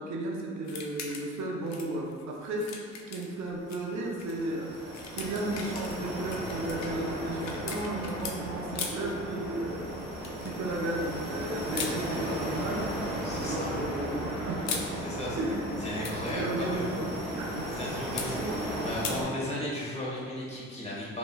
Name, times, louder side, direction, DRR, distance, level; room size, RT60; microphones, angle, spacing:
voice 1, 0.0-2.7 3.1-10.0 10.4-12.9 13.4-14.8 15.4-15.6 16.3-17.0 17.3-17.7, right 2 dB, 65° right, -1 dB, 0.7 m, -34 dB
sound 1, 0.6-1.4 1.7-3.8 4.2-4.3 4.7-8.4 8.7-9.1 10.2-10.6 11.7-12.0 13.1-13.6 14.4-14.9 15.8-16.3 18.2-18.3 19.0-19.2, left 5 dB, 65° left, 0.6 m, -39 dB
sound 2, 3.6-19.2, equal, ahead, 1.5 m, -36 dB
voice 2, 13.2-13.7 15.0-15.4 15.8-16.9 17.7-21.2, left 1 dB, 20° left, -7 dB, 1.3 m, -36 dB
5.1 x 3.1 x 2.3 m, 2.1 s
cardioid pair, 90°, 30 cm